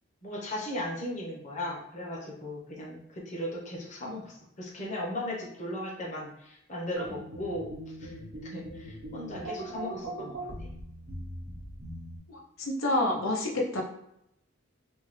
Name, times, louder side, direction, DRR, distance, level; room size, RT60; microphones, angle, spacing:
voice 1, 0.2-7.7 8.0-8.2 8.5-10.7, left 1 dB, 35° left, -3 dB, 0.8 m, -37 dB
sound 1, 6.9-12.2, right 1 dB, 75° right, 0.9 m, -40 dB
voice 2, 12.3-13.8, left 1 dB, 85° left, -1 dB, 0.7 m, -28 dB
3.5 x 2.2 x 3.1 m, 0.77 s
head